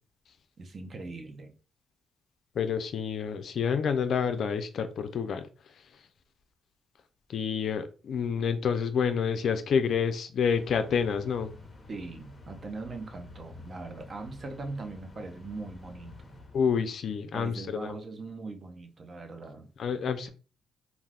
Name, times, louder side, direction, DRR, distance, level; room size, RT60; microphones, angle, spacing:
voice 1, 0.6-1.5 11.9-16.3 17.3-19.7, right 3 dB, 40° right, 0.6 m, -40 dB
voice 2, 2.6-5.5 7.3-11.5 16.5-18.0 19.8-20.3, left 6 dB, 60° left, 0.4 m, -28 dB
sound 1, 10.4-17.2, left 3 dB, 20° left, 0.8 m, -50 dB
2.4 x 2.3 x 3.3 m
cardioid pair, 90°, 0 cm